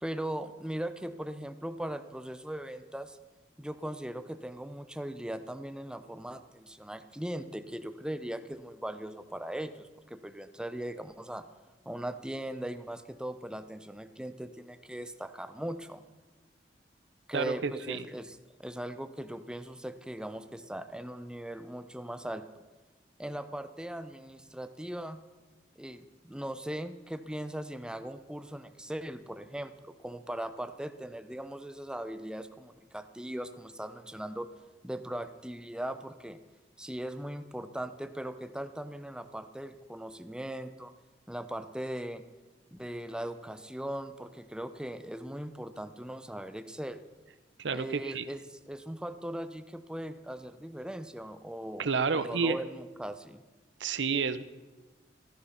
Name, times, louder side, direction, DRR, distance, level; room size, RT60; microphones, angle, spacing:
voice 1, 0.0-3.2 3.6-11.4 11.9-16.0 17.3-22.4 23.2-25.2 25.8-34.5 34.8-36.4 36.8-40.9 41.3-42.2 42.7-47.0 47.7-53.4, right 1 dB, 5° right, 10 dB, 0.7 m, -39 dB
voice 2, 17.3-18.1 47.6-48.3 51.8-52.6 53.8-54.4, right 5 dB, 85° right, 13 dB, 0.8 m, -30 dB
14.5 x 13.0 x 5.7 m, 1.2 s
head